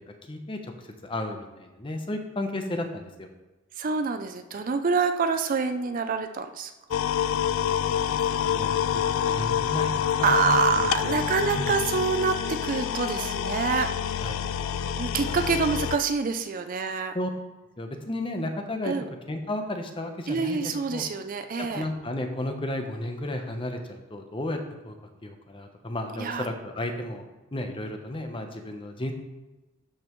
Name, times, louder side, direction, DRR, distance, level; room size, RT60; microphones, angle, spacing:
voice 1, 0.3-3.3 7.8-9.9 10.2-11.2 11.6-11.7 14.2-14.4 15.3-15.7 17.1-17.3 17.8-18.9 19.3-21.1 21.6-24.6 24.8-24.9 25.2-27.2 27.5-29.1, left 1 dB, 25° left, 5 dB, 0.8 m, -33 dB
voice 2, 3.8-6.7 10.2-13.9 15.0-17.1 18.8-19.0 20.3-21.9 26.2-26.5, right 5 dB, 40° right, 8 dB, 0.4 m, -26 dB
sound 1, 6.9-16.0, left 8 dB, 65° left, 0.3 m, -27 dB
12.0 x 5.4 x 3.1 m, 1.1 s
head